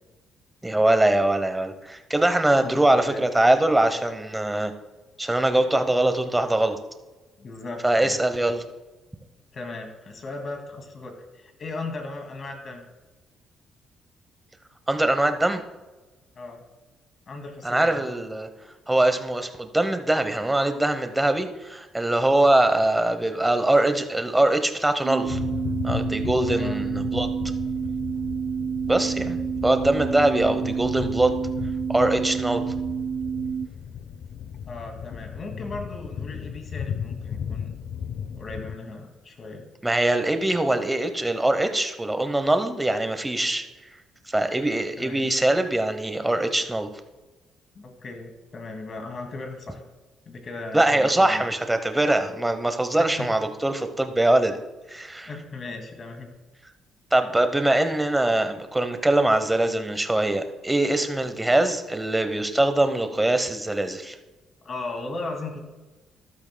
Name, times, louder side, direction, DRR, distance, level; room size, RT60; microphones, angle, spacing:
voice 1, 0.6-4.7 5.2-6.8 7.8-8.6 14.9-15.6 17.6-18.5 18.9-25.4 25.8-27.3 28.9-29.4 29.6-31.4 31.9-32.6 39.8-43.6 44.3-46.9 50.7-54.6 54.9-55.3 57.1-64.1, right 1 dB, 10° right, 8 dB, 0.9 m, -22 dB
voice 2, 2.6-3.2 7.4-8.2 9.5-12.9 16.4-16.6 17.3-18.1 26.5-26.8 34.7-37.7 38.3-39.6 45.0-45.3 47.7-49.8 50.3-51.5 53.0-53.3 55.3-56.3 64.6-65.7, left 3 dB, 40° left, 4 dB, 2.2 m, -37 dB
sound 1, 25.0-33.7, right 7 dB, 50° right, 0.4 m, -29 dB
sound 2, 25.3-38.7, left 8 dB, 60° left, 0.6 m, -35 dB
13.5 x 12.0 x 2.2 m, 1.2 s
cardioid pair, 120°, 0 cm